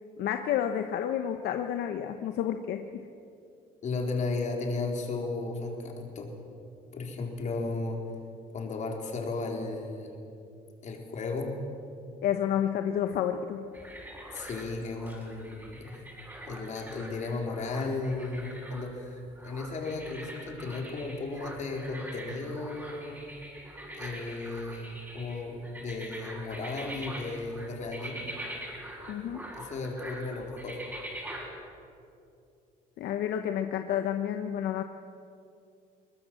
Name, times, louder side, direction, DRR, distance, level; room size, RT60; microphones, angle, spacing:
voice 1, 0.2-3.1 12.2-13.7 29.1-29.4 33.0-34.8, left 9 dB, 75° left, 7 dB, 1.0 m, -30 dB
voice 2, 3.8-6.3 6.9-8.0 8.5-10.1 10.8-11.6 14.3-16.0 16.4-19.2 19.4-23.3 23.9-28.3 29.6-30.8, left 3 dB, 45° left, 1 dB, 4.3 m, -35 dB
sound 1, 13.7-31.5, right 1 dB, 10° right, 6.7 m, -44 dB
22.0 x 20.0 x 7.7 m, 2.5 s
cardioid pair, 110°, 17 cm